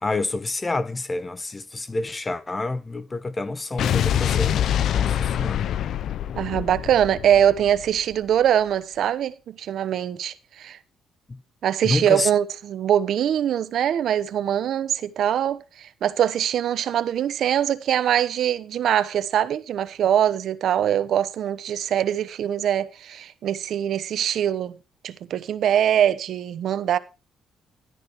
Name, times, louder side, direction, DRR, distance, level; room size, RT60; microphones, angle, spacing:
voice 1, 0.0-4.7 4.9-5.7 11.3-11.4 11.8-12.3, left 2 dB, 25° left, 1.0 m, -28 dB
Explosion, 3.8-8.1, left 10 dB, 70° left, 0.6 m, -25 dB
voice 2, 6.4-10.8 11.6-24.8 25.0-27.0, right 10 dB, 70° right, 1.0 m, -23 dB
12.5 x 12.0 x 3.1 m
cardioid pair, 90°, 0 cm